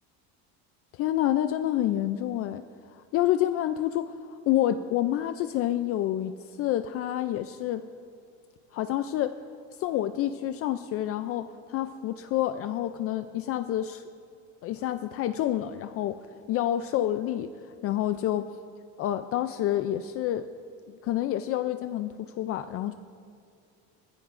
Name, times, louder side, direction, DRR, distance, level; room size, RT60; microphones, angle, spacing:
voice 1, 0.9-2.6 2.9-7.8 8.7-9.4 9.8-14.0 14.6-16.2 16.5-17.5 17.8-18.5 19.0-20.5 21.0-23.0, left 12 dB, 45° left, 10 dB, 0.4 m, -28 dB
21.5 x 15.0 x 2.5 m, 2.4 s
cardioid pair, 145°, 34 cm